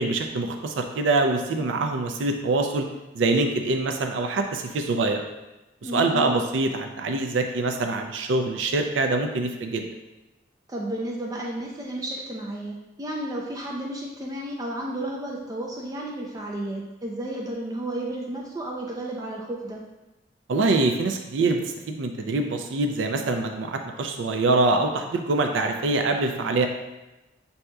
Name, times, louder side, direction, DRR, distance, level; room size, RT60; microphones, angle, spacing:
voice 1, 0.0-2.9 3.1-5.2 5.8-9.9 20.5-21.6 21.9-26.7, right 3 dB, 85° right, 4 dB, 0.4 m, -24 dB
voice 2, 5.8-6.3 10.7-19.8, right 1 dB, 20° right, -2 dB, 0.4 m, -32 dB
7.5 x 2.7 x 2.2 m, 1.0 s
head